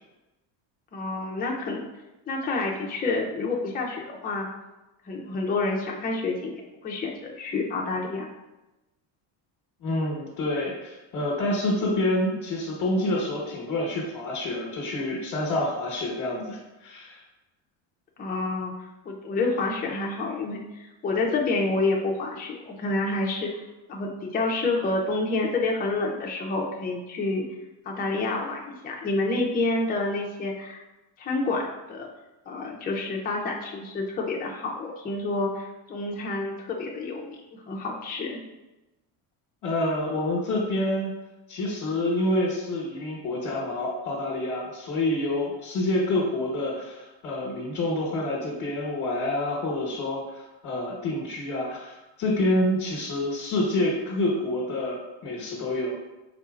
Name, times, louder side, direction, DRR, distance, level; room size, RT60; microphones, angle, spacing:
voice 1, 0.9-1.9 2.3-4.5 5.1-8.3 18.2-23.6 23.9-27.5 27.8-30.8 31.2-32.1 32.5-38.4, left 3 dB, 20° left, -1 dB, 0.5 m, -28 dB
voice 2, 9.8-17.2 39.6-41.1 41.5-56.0, left 1 dB, 45° left, -3 dB, 1.2 m, -27 dB
4.2 x 4.0 x 2.4 m, 1.0 s
cardioid pair, 110°, 49 cm